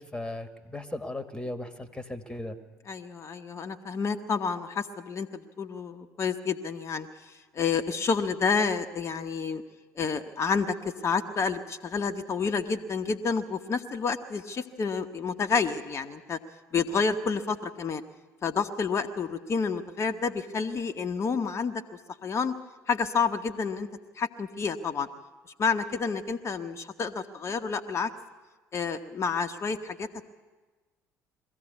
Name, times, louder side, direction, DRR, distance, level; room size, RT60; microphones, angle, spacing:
voice 1, 0.0-2.6, left 1 dB, 10° left, 10 dB, 1.8 m, -37 dB
voice 2, 2.9-9.6 10.0-16.4 16.7-18.0 18.4-21.8 22.2-22.6 22.9-23.9 24.2-25.1 25.6-28.1 28.7-30.2, left 5 dB, 35° left, 6 dB, 1.1 m, -29 dB
21.5 x 15.5 x 8.2 m, 1.3 s
figure-of-eight pair, 55°, 8 cm